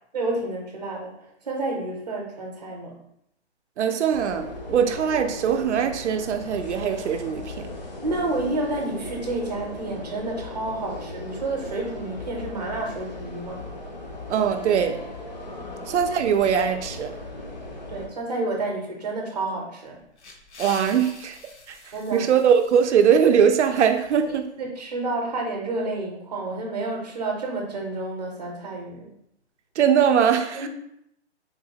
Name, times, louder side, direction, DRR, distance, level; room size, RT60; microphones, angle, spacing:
voice 1, 0.1-1.1 1.4-3.0 8.0-13.6 15.6-15.9 17.9-20.0 21.9-22.3 24.3-29.1 30.6-30.7, right 2 dB, 35° right, 1 dB, 0.6 m, -30 dB
voice 2, 3.8-7.7 14.3-15.0 15.9-17.1 20.6-21.4 21.7-24.5 29.8-30.7, right 7 dB, 90° right, 7 dB, 0.5 m, -21 dB
sound 1, 4.1-18.1, left 2 dB, 40° left, 0.5 m, -37 dB
sound 2, 20.0-24.4, left 3 dB, 75° left, 0.8 m, -46 dB
3.7 x 2.7 x 2.7 m, 0.74 s
hypercardioid pair, 180°, 34 cm